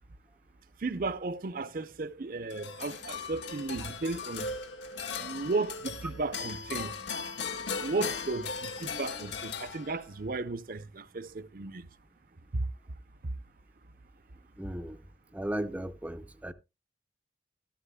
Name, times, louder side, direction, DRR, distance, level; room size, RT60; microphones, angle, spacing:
voice 1, 0.8-4.5 5.2-6.9 7.8-11.9 12.5-12.7 13.2-13.3, right 3 dB, 50° right, 0.6 m, -34 dB
sound 1, 2.5-10.2, left 5 dB, 85° left, 1.8 m, -38 dB
voice 2, 14.6-15.0 15.3-16.5, right 1 dB, 10° right, 0.5 m, -36 dB
13.5 x 13.0 x 2.2 m
head